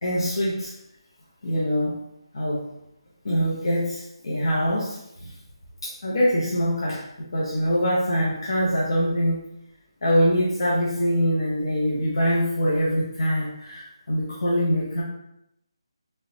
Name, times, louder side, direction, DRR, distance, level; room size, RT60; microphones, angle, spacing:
voice 1, 0.0-0.7 1.4-1.9 2.3-2.6 3.2-5.3 5.8-7.1 7.3-9.4 10.0-15.0, equal, 60° left, -6 dB, 0.7 m, -24 dB
3.1 x 2.1 x 2.7 m, 0.81 s
figure-of-eight pair, 160°, 3 cm